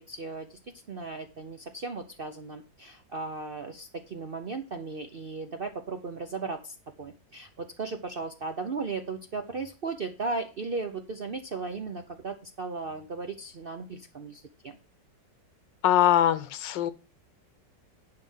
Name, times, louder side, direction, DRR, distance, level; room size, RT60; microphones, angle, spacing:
voice 1, 0.1-0.6 0.9-14.8, right 4 dB, 55° right, 0.6 m, -36 dB
voice 2, 15.8-16.9, left 12 dB, 85° left, 1.4 m, -22 dB
10.5 x 5.0 x 5.6 m
omnidirectional pair, 1.9 m